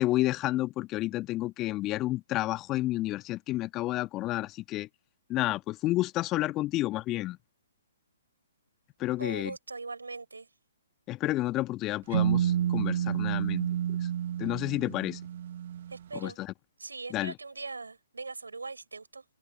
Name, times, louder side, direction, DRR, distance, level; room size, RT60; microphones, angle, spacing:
voice 1, 0.0-4.9 5.3-7.4 9.0-9.5 11.1-13.7 14.4-15.2 16.1-16.5 17.1-17.3, left 17 dB, 25° left, 1.4 m, -30 dB
voice 2, 9.2-10.5 15.9-16.4 16.8-19.3, right 3 dB, 80° right, 6.2 m, -40 dB
sound 1, 12.1-16.0, right 10 dB, 50° right, 0.8 m, -29 dB
figure-of-eight pair, 130°, 0 cm